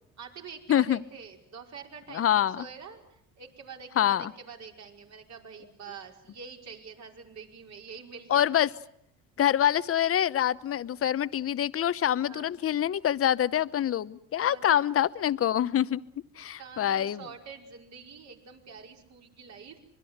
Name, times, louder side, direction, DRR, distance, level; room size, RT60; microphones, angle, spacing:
voice 1, 0.2-2.3 2.6-8.5 12.2-12.6 14.4-14.9 16.3-19.8, right 5 dB, 55° right, 2 dB, 5.3 m, -46 dB
voice 2, 0.7-1.0 2.1-2.6 4.0-4.3 8.3-8.7 9.4-16.0 16.4-17.2, left 10 dB, 45° left, 16 dB, 0.9 m, -25 dB
25.5 x 22.0 x 8.0 m, 0.71 s
cardioid pair, 95°, 33 cm